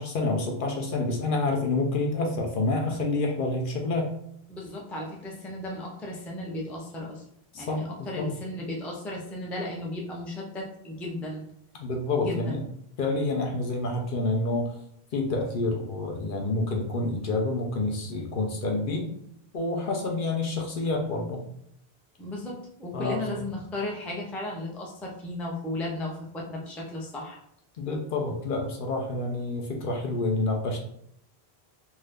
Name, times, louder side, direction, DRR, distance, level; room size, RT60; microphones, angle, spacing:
voice 1, 0.0-4.1 7.5-8.3 11.8-12.6 13.0-14.7 15.1-19.1 19.5-21.4 22.9-23.4 27.8-30.8, left 2 dB, 60° left, 1 dB, 0.7 m, -28 dB
voice 2, 4.5-7.2 7.5-11.4 12.2-12.6 22.2-27.4, left 1 dB, ahead, -2 dB, 0.3 m, -35 dB
2.6 x 2.3 x 3.3 m, 0.73 s
omnidirectional pair, 1.1 m